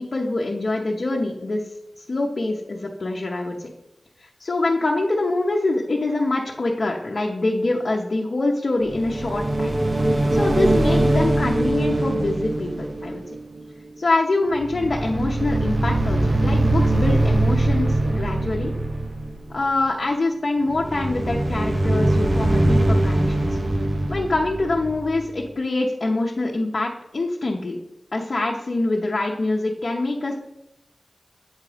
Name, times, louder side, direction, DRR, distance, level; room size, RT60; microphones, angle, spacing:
voice 1, 0.0-1.6 2.1-3.7 4.2-9.7 10.3-13.2 14.0-18.7 19.5-23.6 24.1-27.8 28.1-30.4, left 2 dB, 70° left, -2 dB, 0.8 m, -24 dB
sound 1, 8.9-14.2 14.5-19.7 20.7-25.5, right 1 dB, 55° right, 0.8 m, -22 dB
8.2 x 3.7 x 5.0 m, 0.87 s
cardioid pair, 45°, 0 cm